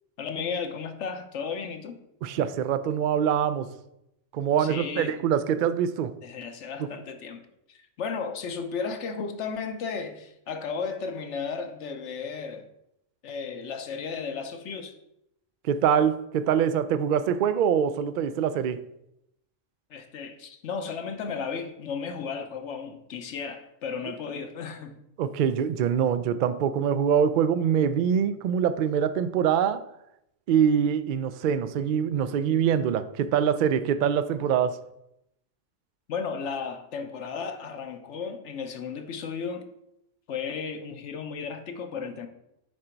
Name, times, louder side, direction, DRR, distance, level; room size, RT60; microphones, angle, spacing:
voice 1, 0.2-2.0 4.6-5.2 6.2-7.4 7.7-12.7 13.2-14.9 19.9-25.0 36.1-39.7 40.3-42.3, left 5 dB, 70° left, 1.1 m, -34 dB
voice 2, 2.2-3.7 4.3-6.2 6.8-6.9 15.6-18.8 25.2-29.8 30.5-34.8, right 8 dB, 65° right, 0.5 m, -24 dB
9.7 x 3.9 x 4.5 m
omnidirectional pair, 1.3 m